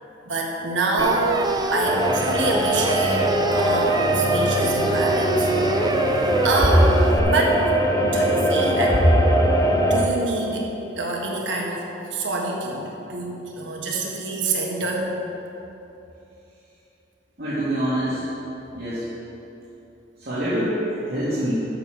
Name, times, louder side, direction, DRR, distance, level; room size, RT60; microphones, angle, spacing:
voice 1, 0.2-5.5 6.4-7.0 7.2-7.6 8.0-9.0 9.8-15.2, right 2 dB, 75° right, -1 dB, 1.6 m, -26 dB
sound 1, 1.0-7.2, right 2 dB, 20° right, 0.5 m, -26 dB
sound 2, 1.8-10.1, right 1 dB, 20° left, 0.8 m, -22 dB
voice 2, 17.4-18.3 18.7-19.1 20.2-21.6, equal, 60° right, -12 dB, 2.4 m, -25 dB
13.0 x 6.2 x 5.1 m, 3.0 s
head